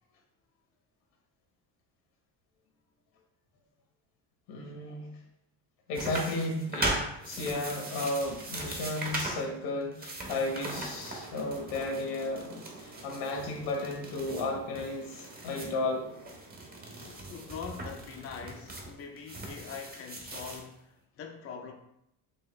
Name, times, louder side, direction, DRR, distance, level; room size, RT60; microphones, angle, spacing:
voice 1, 4.5-5.1 5.9-16.1, left 2 dB, 80° left, 1.3 m, -34 dB
sound 1, 5.9-9.4 9.8-15.7 16.2-20.6, right 2 dB, 20° right, 0.8 m, -39 dB
sound 2, 10.4-18.9, right 3 dB, 55° right, 1.5 m, -51 dB
voice 2, 17.0-21.7, left 6 dB, 35° left, 0.5 m, -43 dB
4.6 x 2.8 x 3.1 m
cardioid pair, 110°, 42 cm